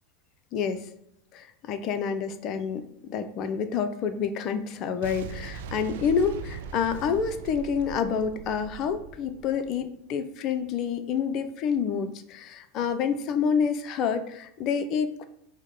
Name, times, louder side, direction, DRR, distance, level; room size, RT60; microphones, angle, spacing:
voice 1, 0.5-0.9 1.3-15.2, left 6 dB, 45° left, 9 dB, 0.4 m, -28 dB
Boom, 5.0-9.9, right 6 dB, 65° right, 0.3 m, -40 dB
5.1 x 2.0 x 3.7 m, 0.76 s
hypercardioid pair, 85°, 0 cm